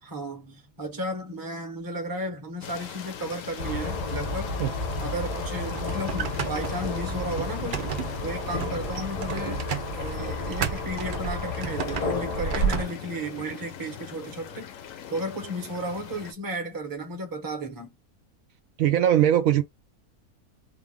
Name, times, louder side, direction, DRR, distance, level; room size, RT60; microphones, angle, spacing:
voice 1, 0.0-4.5 5.0-9.6 9.9-14.7 15.1-17.9, right 1 dB, 20° right, 0.7 m, -34 dB
sound 1, 2.6-16.3, left 9 dB, 65° left, 1.0 m, -42 dB
sound 2, 3.6-12.9, left 1 dB, 90° left, 1.7 m, -31 dB
sound 3, 5.6-12.9, right 8 dB, 85° right, 0.4 m, -35 dB
voice 2, 18.8-19.6, right 11 dB, 70° right, 0.9 m, -20 dB
3.9 x 2.4 x 3.5 m
omnidirectional pair, 1.7 m